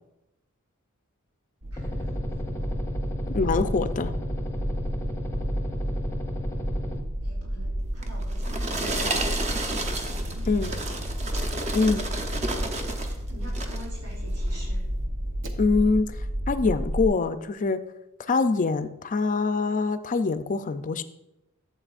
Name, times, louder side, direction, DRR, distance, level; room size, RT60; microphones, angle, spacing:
sound 1, 1.6-17.1, equal, 60° right, 0.8 m, -31 dB
voice 1, 1.7-2.7 7.2-9.7 10.1-11.0 13.3-14.9, equal, 75° right, -3 dB, 2.8 m, -47 dB
sound 2, 1.8-7.0, left 1 dB, 15° left, 0.7 m, -34 dB
voice 2, 3.3-4.1 10.5-10.7 11.7-12.1 15.6-16.1 16.5-17.8 18.3-21.0, left 4 dB, 35° left, 11 dB, 0.4 m, -24 dB
sound 3, 8.0-13.2 13.5-13.9 14.5-14.6, right 2 dB, 30° right, 0.8 m, -31 dB
12.0 x 7.6 x 2.5 m, 0.92 s
head